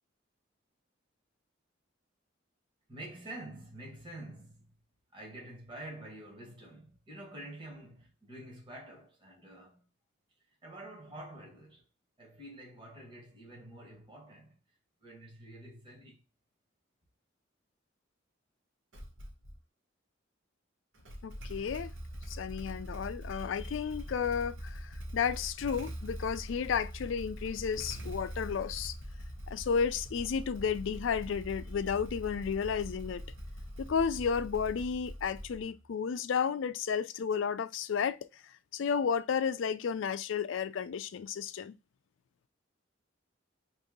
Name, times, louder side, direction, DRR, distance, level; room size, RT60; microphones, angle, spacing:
voice 1, 2.9-4.7 5.1-9.9 10.6-11.8 12.2-14.6 15.0-16.2, right 1 dB, 25° right, 1.2 m, -48 dB
Motorcycle / Engine starting, 18.9-19.6 20.9-35.8, equal, 70° right, 0.9 m, -43 dB
voice 2, 21.2-21.9 22.3-28.9 29.5-33.3 33.8-38.3 38.7-41.7, left 6 dB, 70° left, 0.4 m, -32 dB
3.0 x 2.7 x 3.7 m
head